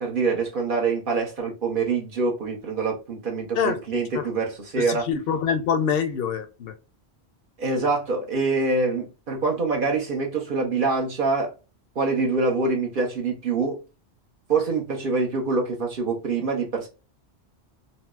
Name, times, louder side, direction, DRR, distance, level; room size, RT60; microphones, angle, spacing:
voice 1, 0.0-5.1 7.6-11.5 11.9-13.8 14.5-16.9, right 3 dB, 55° right, 1.0 m, -25 dB
voice 2, 4.8-6.7, left 7 dB, 65° left, 0.7 m, -25 dB
4.1 x 2.0 x 2.2 m
omnidirectional pair, 1.1 m